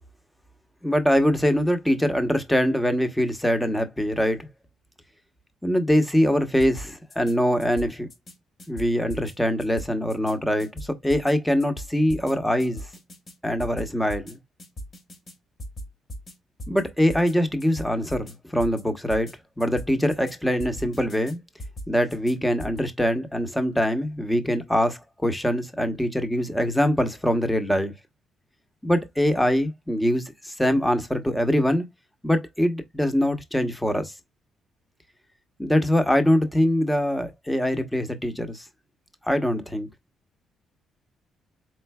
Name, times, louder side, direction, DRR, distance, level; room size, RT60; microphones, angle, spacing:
voice 1, 0.8-4.5 5.6-8.1 8.7-12.9 13.4-14.4 16.7-21.4 21.9-27.9 28.8-31.8 32.2-34.1 35.6-38.7 39.2-39.9, equal, 5° left, 1.0 m, -23 dB
sound 1, 6.6-7.3 7.6-8.3 8.6-9.3 9.6-10.3 10.6-11.3 11.6-12.3 12.6-13.3 13.6-14.3 14.6-15.3 15.6-16.3 16.6-16.8 17.1-17.3 17.6-18.3 18.6-18.8 19.1-19.3 19.6-20.3 20.6-21.3 21.6-22.3 22.6-22.8, equal, 40° left, 1.9 m, -38 dB
4.5 x 3.8 x 2.2 m
cardioid pair, 90°, 0 cm